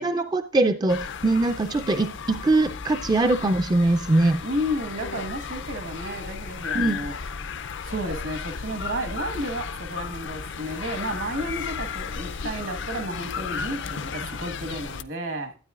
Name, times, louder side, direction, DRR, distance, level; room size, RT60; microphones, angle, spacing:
voice 1, 0.0-4.4 6.7-7.0, right 2 dB, 20° right, 0.4 m, -22 dB
sound 1, 0.9-15.0, left 6 dB, 60° left, 0.5 m, -34 dB
voice 2, 4.4-7.1 7.8-15.6, equal, 70° right, 1.4 m, -32 dB
12.0 x 9.0 x 2.4 m
head